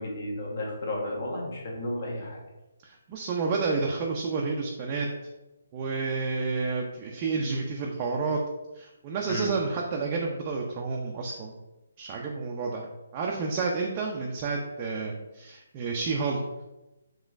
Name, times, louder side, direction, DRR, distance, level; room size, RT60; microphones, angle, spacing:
voice 1, 0.0-2.4 9.3-9.5, left 1 dB, 55° left, -2 dB, 1.2 m, -33 dB
voice 2, 2.8-5.1 5.7-8.4 8.7-11.5 12.0-16.4, right 4 dB, 25° right, -1 dB, 0.4 m, -30 dB
5.0 x 3.0 x 2.5 m, 1.0 s
hypercardioid pair, 160°, 0 cm